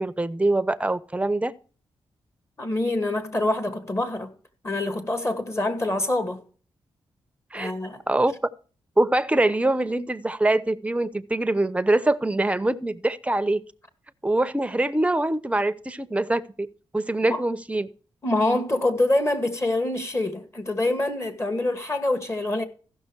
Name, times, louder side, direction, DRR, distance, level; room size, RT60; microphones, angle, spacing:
voice 1, 0.0-1.5 7.5-7.7 8.1-8.3 9.0-13.6 14.2-16.7 16.9-17.9, right 2 dB, 15° right, 0.8 m, -24 dB
voice 2, 2.6-4.3 4.6-6.4 7.5-8.0 17.3-17.4 18.2-22.6, left 2 dB, 25° left, 2.0 m, -25 dB
15.0 x 6.2 x 4.6 m
cardioid pair, 70°, 10 cm